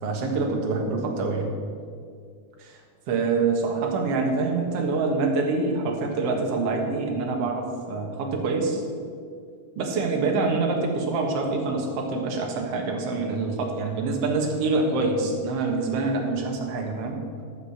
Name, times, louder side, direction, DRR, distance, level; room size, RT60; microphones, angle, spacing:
voice 1, 0.0-1.5 2.6-2.8 3.1-8.8 9.8-17.2, right 3 dB, 55° right, 1 dB, 2.2 m, -26 dB
13.5 x 6.2 x 7.1 m, 2.2 s
omnidirectional pair, 3.7 m